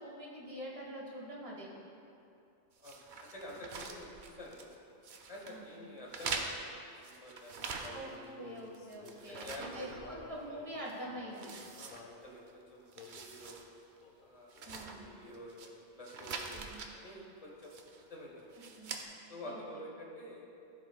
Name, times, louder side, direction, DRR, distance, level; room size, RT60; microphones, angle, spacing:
voice 1, 0.0-1.7 5.5-5.8 7.9-11.5 14.6-15.1 16.5-16.8 18.7-18.9 19.4-19.6, right 1 dB, 30° right, -5 dB, 1.6 m, -45 dB
voice 2, 2.8-4.7 5.3-8.6 9.3-9.9 11.7-13.6 14.1-17.7 18.1-18.6 19.3-20.5, left 1 dB, 35° left, -2 dB, 1.2 m, -49 dB
sound 1, 2.8-4.8 5.0-5.6 6.1-8.3 8.6-10.5 10.9-11.0 11.3-12.5 12.8-13.7 14.0-14.1 14.5-15.7 16.0-16.9 17.6-18.1 18.5-19.0, right 4 dB, 55° right, 0.7 m, -44 dB
Male singing, 7.8-12.2 12.9-13.4 14.0-14.3 14.5-15.5, left 4 dB, 55° left, 0.8 m, -53 dB
14.0 x 5.2 x 2.4 m, 2.6 s
omnidirectional pair, 1.1 m